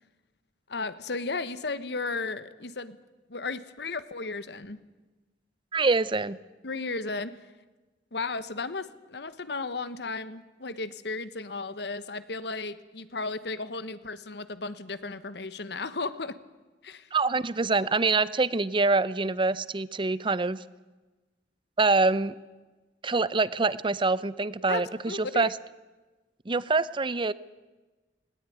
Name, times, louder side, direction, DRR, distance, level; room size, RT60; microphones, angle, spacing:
voice 1, 0.7-3.0 3.3-4.8 6.6-7.4 8.1-16.4 16.8-17.1 24.7-25.4, left 3 dB, 70° left, 13 dB, 1.2 m, -34 dB
voice 2, 5.7-6.4 17.1-20.6 21.8-22.4 23.0-25.5 26.5-27.3, right 3 dB, 30° right, 18 dB, 0.6 m, -25 dB
19.5 x 18.5 x 9.4 m, 1.2 s
head